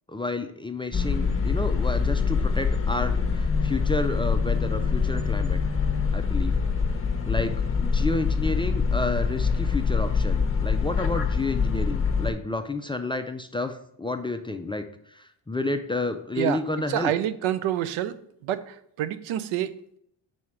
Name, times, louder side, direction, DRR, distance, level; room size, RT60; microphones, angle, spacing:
voice 1, 0.1-5.6 6.1-6.6 7.3-17.1, left 2 dB, 10° left, 6 dB, 0.3 m, -30 dB
sound 1, 0.9-12.3, left 5 dB, 25° left, 0.8 m, -25 dB
voice 2, 16.9-20.0, right 12 dB, 90° right, 13 dB, 0.6 m, -28 dB
4.9 x 4.2 x 5.8 m, 0.71 s
cardioid pair, 95°, 47 cm